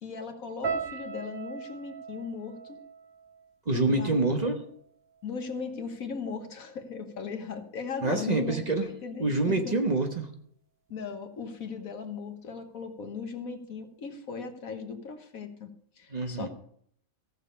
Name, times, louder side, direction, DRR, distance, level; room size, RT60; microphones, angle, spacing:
voice 1, 0.0-2.8 3.7-4.2 5.2-9.8 10.9-16.5, left 5 dB, 80° left, 6 dB, 1.6 m, -38 dB
sound 1, 0.6-4.8 5.1-5.9 6.5-6.7, right 5 dB, 60° right, 2.6 m, -40 dB
voice 2, 3.7-4.6 8.0-8.9 9.2-10.3 16.1-16.5, right 2 dB, 30° right, 4 dB, 1.1 m, -26 dB
15.0 x 6.7 x 5.3 m, 0.66 s
omnidirectional pair, 1.4 m